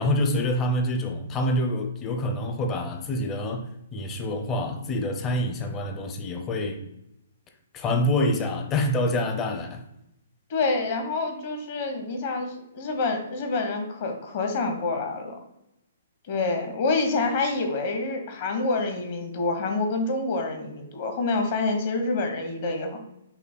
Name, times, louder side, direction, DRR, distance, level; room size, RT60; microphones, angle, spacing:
voice 1, 0.0-6.8 7.7-9.8, left 1 dB, 25° left, 0.6 m, -26 dB
voice 2, 10.5-15.4 16.3-23.0, left 3 dB, 50° left, 1.0 m, -27 dB
5.4 x 2.1 x 4.5 m
hypercardioid pair, 130°, 0 cm